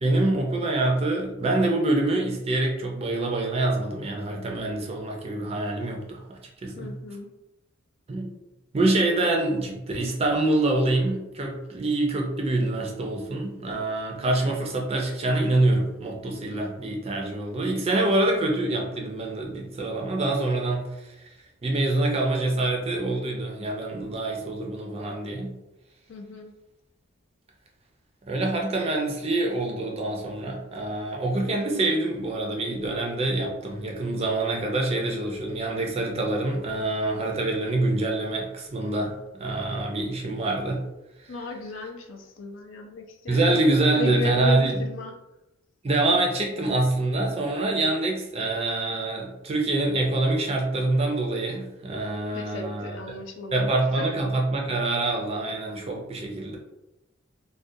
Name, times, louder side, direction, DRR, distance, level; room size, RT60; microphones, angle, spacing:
voice 1, 0.0-6.9 8.1-8.3 8.7-21.2 21.6-25.5 28.3-40.8 41.2-41.3 43.3-44.8 45.8-53.0 53.5-56.6, right 2 dB, 30° right, 1 dB, 0.4 m, -25 dB
voice 2, 6.8-7.3 26.1-26.5 41.3-45.1 52.3-54.0, left 2 dB, 65° left, 3 dB, 0.4 m, -35 dB
2.4 x 2.2 x 2.6 m, 0.93 s
head